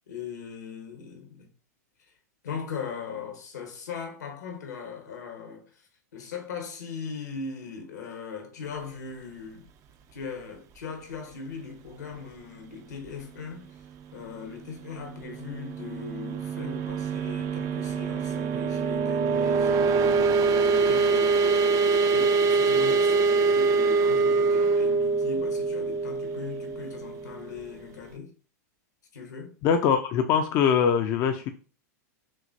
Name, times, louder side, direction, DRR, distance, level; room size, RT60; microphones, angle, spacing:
voice 1, 0.1-1.5 2.4-9.7 10.1-13.8 14.1-20.2 20.6-21.6 22.1-28.3 29.1-29.5, left 5 dB, 80° left, 1.3 m, -39 dB
sound 1, 15.2-27.7, right 4 dB, 35° right, 0.5 m, -24 dB
voice 2, 29.6-31.5, left 7 dB, 40° left, 0.5 m, -22 dB
6.0 x 2.5 x 2.7 m
hypercardioid pair, 105°, 9 cm